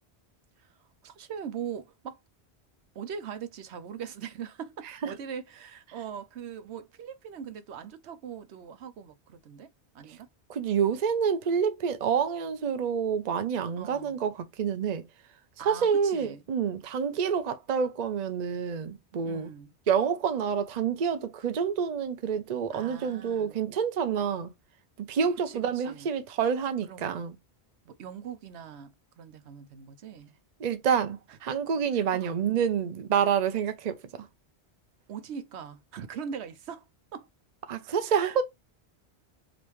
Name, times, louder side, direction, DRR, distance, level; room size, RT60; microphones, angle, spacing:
voice 1, 1.0-2.2 2.9-10.3 13.8-14.2 15.6-16.4 19.2-19.7 22.7-23.6 25.5-26.1 26.9-27.2 27.9-30.3 31.9-32.3 35.1-36.9 37.1-37.3 38.1-38.4, right 7 dB, 80° right, 1.0 m, -41 dB
voice 2, 10.5-15.0 15.7-19.5 19.9-24.5 25.0-27.4 30.6-34.0 37.7-38.4, right 7 dB, 45° right, 0.7 m, -28 dB
5.2 x 2.5 x 3.0 m
omnidirectional pair, 1.1 m